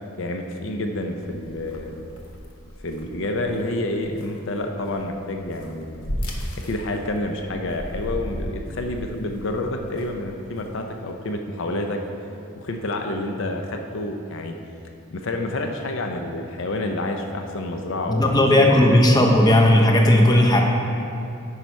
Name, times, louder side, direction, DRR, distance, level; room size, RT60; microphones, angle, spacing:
voice 1, 0.2-2.0 2.8-6.0 6.5-12.0 12.5-14.5 15.1-18.7 19.1-19.2, left 1 dB, 60° left, 4 dB, 0.6 m, -28 dB
sound 1, 1.2-11.0, equal, 90° left, 1.0 m, -36 dB
voice 2, 18.1-20.6, left 1 dB, 20° left, 0 dB, 0.8 m, -15 dB
9.4 x 5.6 x 4.6 m, 2.7 s
head